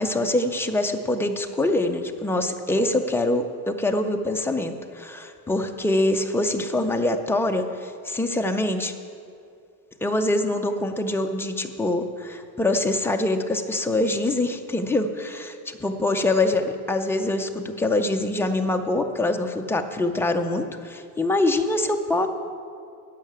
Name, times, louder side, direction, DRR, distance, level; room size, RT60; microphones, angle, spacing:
voice 1, 0.0-8.9 10.0-15.6 15.8-22.3, left 2 dB, 5° left, 4 dB, 0.3 m, -24 dB
14.0 x 5.7 x 8.9 m, 2.4 s
cardioid pair, 165°, 40 cm